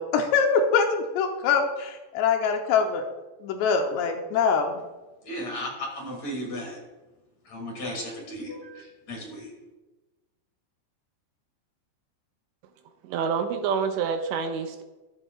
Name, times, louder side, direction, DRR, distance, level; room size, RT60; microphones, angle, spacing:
voice 1, 0.0-3.1 3.4-4.8, left 5 dB, 80° left, 3 dB, 2.8 m, -24 dB
voice 2, 5.2-6.8 7.4-9.5, equal, 45° left, -1 dB, 2.6 m, -35 dB
voice 3, 13.0-14.8, right 6 dB, 80° right, 7 dB, 2.8 m, -27 dB
13.0 x 13.0 x 2.4 m, 1.1 s
omnidirectional pair, 5.3 m